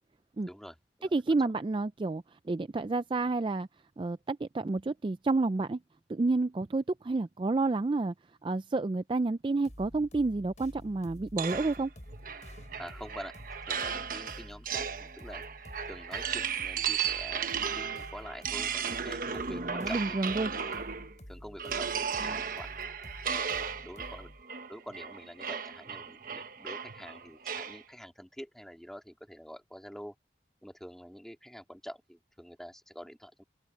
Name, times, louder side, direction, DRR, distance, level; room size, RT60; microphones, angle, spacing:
voice 1, 0.5-1.5 12.8-15.4 15.8-20.3 21.3-22.7 23.2-24.3 24.7-30.2 30.6-33.4, equal, ahead, 2.3 m, -47 dB
voice 2, 1.1-3.7 4.0-5.8 6.1-8.1 8.4-11.9 19.5-20.5, right 3 dB, 30° right, 0.3 m, -30 dB
sound 1, 9.6-24.4, equal, 40° left, 5.9 m, -49 dB
sound 2, 11.4-21.2 21.6-27.8, right 7 dB, 50° right, 1.2 m, -35 dB
open air
head